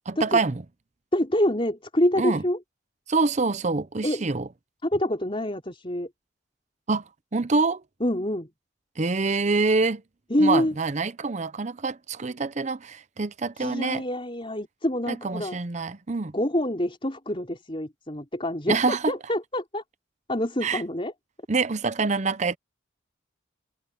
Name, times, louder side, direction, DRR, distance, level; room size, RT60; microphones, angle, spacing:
voice 1, 0.1-0.6 2.2-2.4 3.1-4.5 6.9-7.0 7.3-7.8 9.0-10.0 10.4-14.0 15.1-16.3 18.7-19.1 20.6-20.8 21.5-22.6, right 4 dB, 35° right, 0.7 m, -25 dB
voice 2, 1.1-2.6 4.0-4.2 4.8-6.1 8.0-8.5 10.3-10.7 13.6-15.6 16.3-18.8 19.1-19.8 20.3-21.1, left 1 dB, 30° left, 4.5 m, -26 dB
head